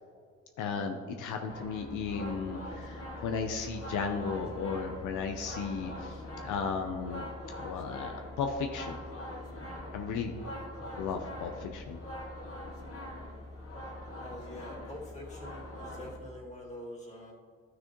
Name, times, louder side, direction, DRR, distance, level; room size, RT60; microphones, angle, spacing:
voice 1, 0.6-7.3 7.6-9.0 9.9-10.3 11.0-12.0, left 5 dB, 80° left, 4 dB, 0.7 m, -35 dB
sound 1, 1.5-16.2, left 1 dB, 50° left, 1.9 m, -43 dB
voice 2, 14.2-17.3, left 1 dB, 25° left, -3 dB, 2.3 m, -45 dB
12.0 x 6.2 x 3.1 m, 2.1 s
cardioid pair, 90°, 30 cm